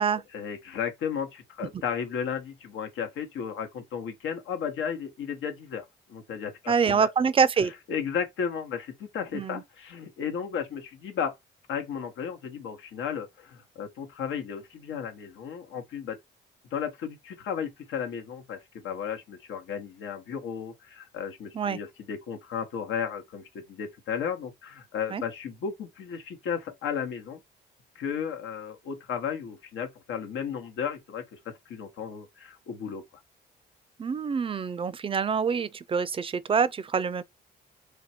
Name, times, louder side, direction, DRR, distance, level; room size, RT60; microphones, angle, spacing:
voice 1, 0.3-7.1 7.9-11.3 11.7-16.2 16.7-27.4 27.9-33.0, left 7 dB, 80° left, 1.0 m, -34 dB
voice 2, 6.7-7.7 9.3-9.6 21.5-21.8 25.1-25.2 34.0-37.2, right 6 dB, 25° right, 0.4 m, -25 dB
3.3 x 2.4 x 4.2 m
cardioid pair, 90°, 20 cm